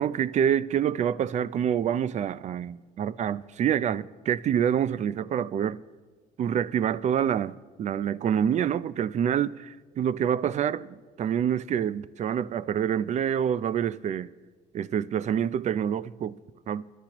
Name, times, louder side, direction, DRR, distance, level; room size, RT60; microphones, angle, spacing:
voice 1, 0.0-5.8 6.4-14.3 14.7-16.4 16.7-16.8, right 9 dB, 45° right, 0.4 m, -27 dB
25.5 x 12.0 x 3.0 m
cardioid pair, 110°, 17 cm